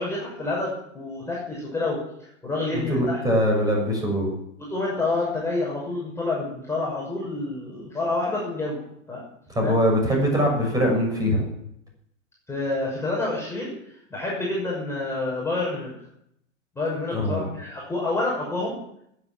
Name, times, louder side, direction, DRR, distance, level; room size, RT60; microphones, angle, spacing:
voice 1, 0.0-2.0 2.4-3.2 4.7-8.8 9.1-9.2 9.6-9.7 12.5-13.7 14.1-15.9 16.8-18.8, left 2 dB, 5° left, -5 dB, 5.8 m, -28 dB
voice 2, 2.9-4.3 9.5-11.4 17.1-17.4, equal, 10° right, 0 dB, 6.8 m, -22 dB
20.5 x 8.6 x 7.6 m, 0.74 s
figure-of-eight pair, 105°, 38 cm